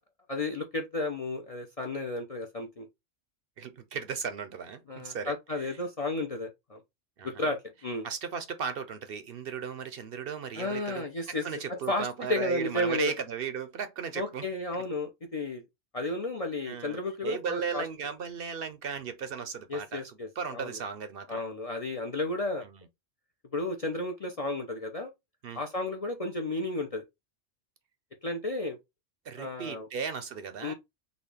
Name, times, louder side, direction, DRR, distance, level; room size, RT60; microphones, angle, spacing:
voice 1, 0.3-2.9 4.9-6.8 7.2-8.1 10.6-13.1 14.2-15.6 15.9-17.9 19.7-20.8 21.3-22.6 23.5-25.1 25.5-27.0 28.2-28.8 29.4-29.9 30.6-30.7, left 2 dB, 45° left, 0.5 m, -33 dB
voice 2, 3.6-5.3 7.2-7.5 8.0-14.5 16.7-21.4 25.4-25.6 29.3-30.7, right 6 dB, 60° right, 0.7 m, -36 dB
3.9 x 2.3 x 3.2 m
omnidirectional pair, 1.2 m